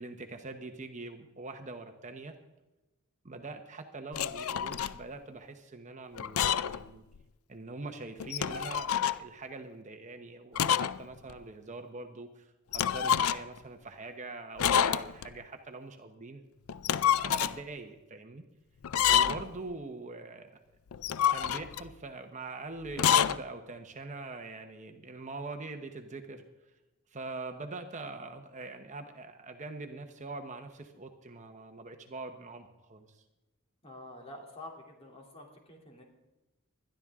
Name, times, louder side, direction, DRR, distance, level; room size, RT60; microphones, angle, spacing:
voice 1, 0.0-2.4 3.2-7.0 7.5-16.4 17.2-18.4 19.1-20.6 21.3-26.4 27.1-33.2, right 3 dB, 35° right, 6 dB, 0.9 m, -43 dB
sound 1, 4.1-5.0 6.2-6.8 7.1-7.2 8.2-9.2 10.5-11.0 11.3-11.4 12.7-13.6 14.6-15.3 16.7-17.6 18.8-19.5 20.9-21.9 22.9-23.4, left 9 dB, 80° left, 0.4 m, -27 dB
voice 2, 19.1-19.5 33.8-36.0, left 1 dB, 30° left, 0 dB, 2.9 m, -48 dB
20.5 x 12.5 x 3.6 m, 1.0 s
head